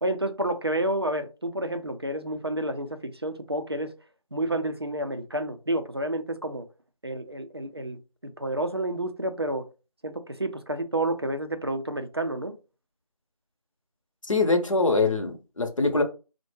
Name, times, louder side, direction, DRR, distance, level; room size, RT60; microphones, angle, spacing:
voice 1, 0.0-3.9 4.3-6.7 7.0-8.0 8.4-9.7 10.0-12.5, right 1 dB, 40° right, 0.4 m, -29 dB
voice 2, 14.3-16.0, left 3 dB, 55° left, 0.8 m, -23 dB
4.4 x 2.1 x 3.1 m
figure-of-eight pair, 170°, 19 cm